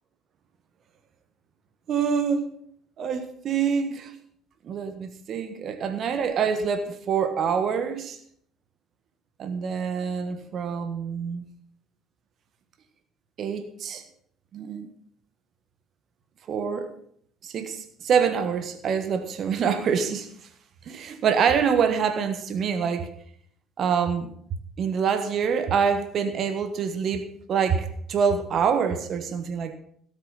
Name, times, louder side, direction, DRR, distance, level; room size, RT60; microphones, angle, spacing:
voice 1, 1.9-2.5 3.0-4.1 4.6-8.2 9.4-11.5 13.4-14.0 14.5-14.9 16.5-16.9 17.4-20.3 20.9-23.1 23.8-24.3 24.8-29.8, right 6 dB, 50° right, 10 dB, 1.5 m, -26 dB
17.5 x 7.4 x 5.6 m, 0.63 s
figure-of-eight pair, 55°, 0 cm